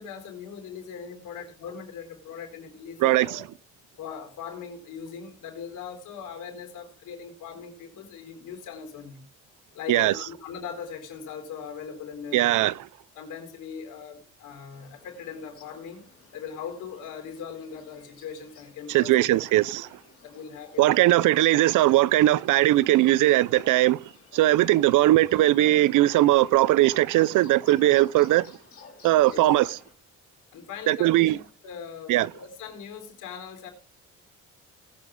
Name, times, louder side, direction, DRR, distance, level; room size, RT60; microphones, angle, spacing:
voice 1, 0.0-3.5 4.0-9.3 9.7-12.5 13.1-16.0 16.3-19.4 20.2-21.1 29.3-29.5 30.5-33.7, left 7 dB, 85° left, 4.3 m, -40 dB
voice 2, 12.3-12.7 18.9-19.9 20.8-24.0 24.3-28.5 29.0-29.8 30.9-31.4 32.1-32.3, right 16 dB, 85° right, 0.6 m, -20 dB
sound 1, 14.7-29.9, left 5 dB, 45° left, 4.7 m, -53 dB
19.5 x 8.4 x 3.8 m
cardioid pair, 90°, 30 cm